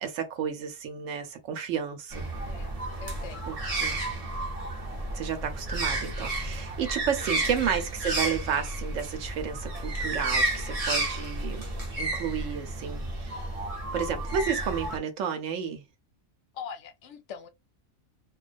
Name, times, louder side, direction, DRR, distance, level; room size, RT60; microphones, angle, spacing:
voice 1, 0.0-2.3 3.5-4.0 5.1-11.7 12.0-13.3 13.9-15.9, right 7 dB, 70° right, 1.0 m, -32 dB
sound 1, 2.1-15.0, right 2 dB, 40° right, 0.6 m, -32 dB
voice 2, 2.5-3.5 7.3-7.5 16.5-17.5, left 7 dB, 65° left, 0.8 m, -42 dB
2.3 x 2.2 x 2.4 m
omnidirectional pair, 1.5 m